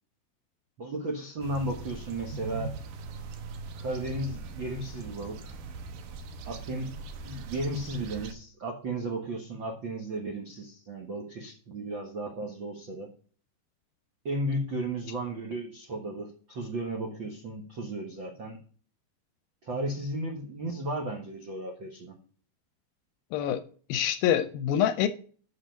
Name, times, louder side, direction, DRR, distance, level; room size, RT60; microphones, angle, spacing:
voice 1, 0.8-2.7 3.8-5.6 6.4-6.9 7.2-13.1 14.2-18.6 19.6-22.2, right 1 dB, 85° right, 1.0 m, -34 dB
sound 1, 1.4-8.3, right 3 dB, 70° right, 2.2 m, -41 dB
voice 2, 23.3-23.6 23.9-25.1, left 10 dB, 80° left, 2.2 m, -25 dB
7.9 x 6.0 x 7.0 m
omnidirectional pair, 4.7 m